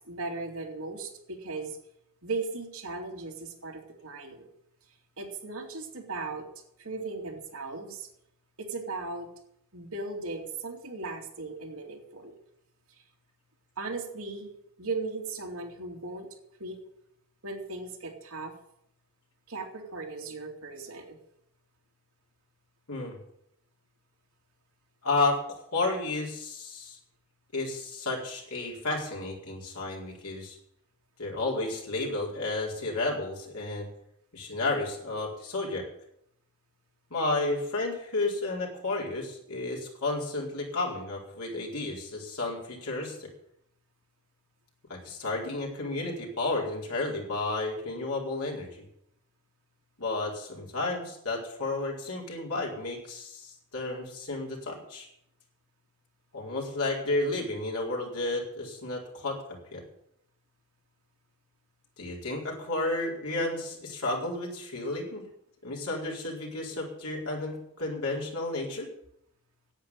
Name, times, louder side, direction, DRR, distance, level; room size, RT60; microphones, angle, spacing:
voice 1, 0.1-1.8 2.2-4.5 5.2-6.4 6.8-8.1 8.6-9.3 9.7-12.3 13.8-14.5 14.8-16.3 16.6-16.8 17.4-18.5 19.5-21.2, right 3 dB, 65° right, 1 dB, 2.8 m, -37 dB
voice 2, 25.0-27.0 27.5-30.6 31.2-33.9 34.3-35.9 37.1-43.3 44.9-48.8 50.0-55.1 56.3-59.8 62.0-65.2 65.6-68.9, left 2 dB, 75° left, -2 dB, 4.6 m, -32 dB
10.5 x 8.8 x 9.8 m, 0.76 s
head